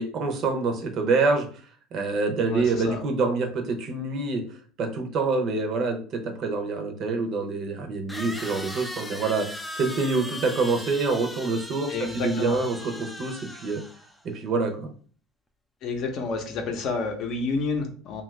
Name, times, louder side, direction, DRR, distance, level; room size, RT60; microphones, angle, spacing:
voice 1, 0.0-1.5 1.9-4.4 4.8-13.8 14.2-14.9, right 3 dB, 45° right, 4 dB, 0.6 m, -26 dB
voice 2, 2.5-3.0 11.9-12.6 15.8-18.2, left 3 dB, 50° left, 4 dB, 0.6 m, -29 dB
sound 1, 6.5-6.6 8.1-14.2, left 1 dB, 5° left, 0.3 m, -38 dB
2.7 x 2.4 x 3.2 m, 0.43 s
cardioid pair, 135°, 0 cm